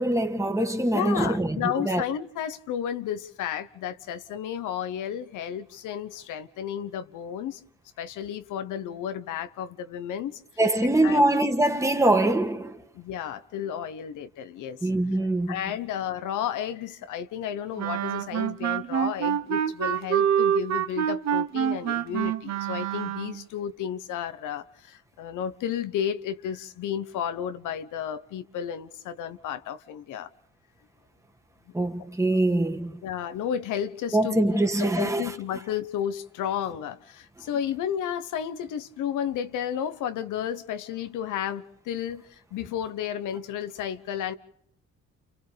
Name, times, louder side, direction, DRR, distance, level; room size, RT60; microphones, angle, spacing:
voice 1, 0.0-2.0 10.6-12.8 14.8-15.5 31.7-32.9 34.1-35.2, right 1 dB, 10° right, 2.0 m, -23 dB
voice 2, 0.9-7.6 8.0-10.4 11.0-11.2 12.9-14.9 15.5-30.3 33.0-44.3, left 9 dB, 85° left, 1.1 m, -32 dB
Wind instrument woodwind instrument, 17.8-23.4, right 9 dB, 60° right, 0.9 m, -26 dB
30.0 x 29.0 x 3.5 m
cardioid pair, 90°, 30 cm